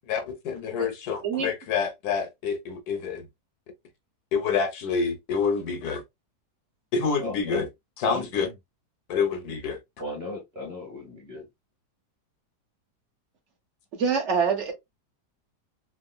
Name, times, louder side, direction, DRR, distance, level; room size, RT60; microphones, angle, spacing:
voice 1, 0.1-3.3 4.3-6.0 6.9-7.7 8.0-8.5 9.1-9.8, left 5 dB, 70° left, 1.1 m, -27 dB
voice 2, 7.2-7.7 8.0-8.5 10.0-11.4, left 2 dB, 30° right, 1.2 m, -36 dB
voice 3, 13.9-14.7, right 6 dB, 50° right, 1.1 m, -25 dB
3.6 x 2.0 x 2.2 m
omnidirectional pair, 1.8 m